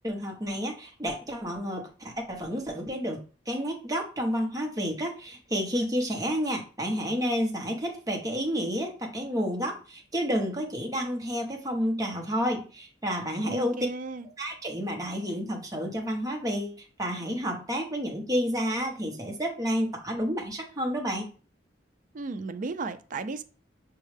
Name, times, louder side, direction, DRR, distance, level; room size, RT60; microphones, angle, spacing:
voice 1, 0.0-3.2 3.5-13.9 14.4-21.3, equal, 20° right, 0.9 m, -30 dB
voice 2, 13.4-14.3 22.1-23.4, right 3 dB, 45° right, 0.4 m, -34 dB
6.2 x 2.3 x 3.2 m
head